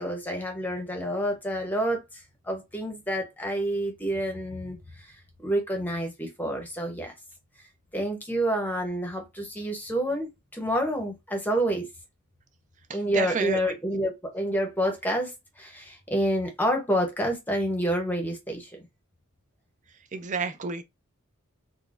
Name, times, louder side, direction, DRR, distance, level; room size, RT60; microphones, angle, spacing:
voice 1, 0.0-7.1 7.9-11.9 12.9-18.9, equal, 10° left, 0.8 m, -28 dB
voice 2, 13.1-13.6 20.1-20.8, right 5 dB, 35° right, 0.4 m, -29 dB
3.8 x 2.2 x 2.5 m
head